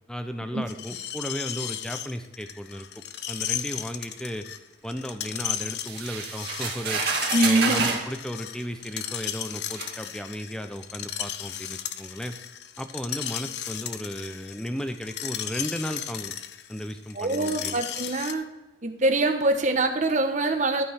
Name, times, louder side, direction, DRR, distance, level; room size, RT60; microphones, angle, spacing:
voice 1, 0.1-2.9 3.3-4.4 4.8-7.0 7.4-12.3 12.8-16.3 16.7-17.8, equal, 5° left, 7 dB, 0.7 m, -35 dB
Screech, 0.7-18.3, left 10 dB, 65° left, 0.6 m, -35 dB
sound 1, 5.9-8.1 9.0-9.1 9.8-9.9, right 4 dB, 60° right, 2.0 m, -28 dB
voice 2, 7.3-7.9 17.1-18.5 18.8-20.8, right 2 dB, 40° right, 5 dB, 1.1 m, -24 dB
13.0 x 5.4 x 4.3 m, 1.1 s
head